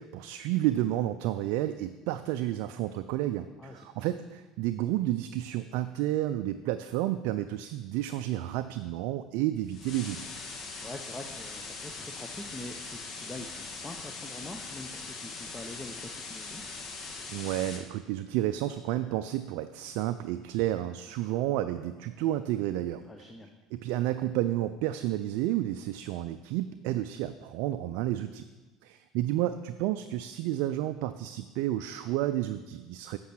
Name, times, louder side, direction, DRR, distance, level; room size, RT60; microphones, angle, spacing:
voice 1, 0.0-10.3 17.3-23.0 23.7-28.4 28.8-33.2, right 14 dB, 70° right, 9 dB, 0.3 m, -31 dB
voice 2, 3.6-4.1 10.8-16.6 23.1-23.5, left 2 dB, 15° left, 4 dB, 0.8 m, -44 dB
sound 1, 9.7-17.8, left 4 dB, 50° left, 1.4 m, -41 dB
8.2 x 5.4 x 6.0 m, 1.2 s
hypercardioid pair, 75°, 0 cm